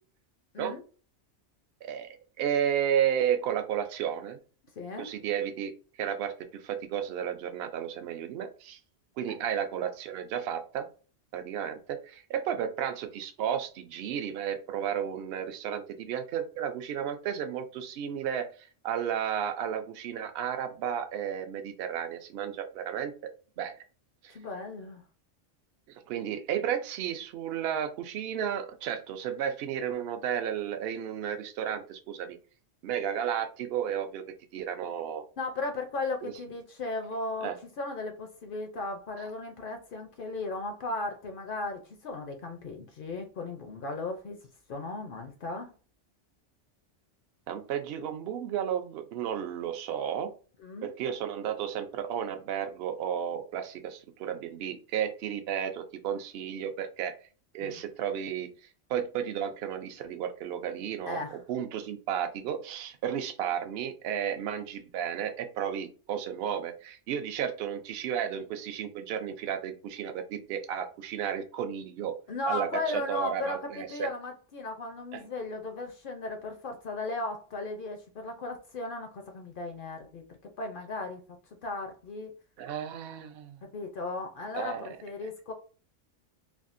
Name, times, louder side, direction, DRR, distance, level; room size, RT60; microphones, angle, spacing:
voice 1, 1.8-4.4 5.0-5.7 6.0-8.8 9.2-10.9 11.3-18.5 18.8-23.1 23.6-23.7 24.2-24.3 26.1-32.4 32.8-34.2 34.5-35.2 36.2-36.3 37.4-37.6 47.5-50.3 50.8-57.1 57.5-58.5 58.9-72.1 72.5-74.1 75.1-75.3 82.6-83.7 84.5-84.9, right 9 dB, 65° right, 0.7 m, -33 dB
voice 2, 4.8-5.1 9.3-9.4 24.3-25.0 35.4-44.4 44.7-45.7 50.6-50.9 57.6-57.7 61.1-61.4 72.3-81.2 81.6-82.3 83.7-85.5, left 2 dB, 60° left, 0.6 m, -36 dB
3.5 x 2.3 x 2.5 m
omnidirectional pair, 1.2 m